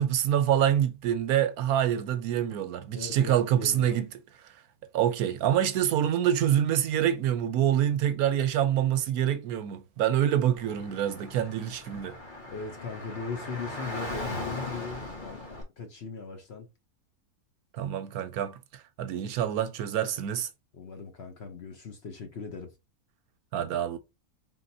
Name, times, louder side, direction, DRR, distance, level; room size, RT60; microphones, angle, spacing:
voice 1, 0.0-4.1 4.9-12.1 17.7-18.6 19.0-20.5 23.5-24.0, right 10 dB, 80° right, 1.1 m, -26 dB
voice 2, 2.9-4.0 12.5-15.5 15.8-16.7 20.7-22.8, left 5 dB, 50° left, 0.9 m, -39 dB
Car / Traffic noise roadway noise, 10.6-15.6, left 1 dB, 35° left, 1.4 m, -39 dB
4.3 x 3.6 x 2.7 m
omnidirectional pair, 1.6 m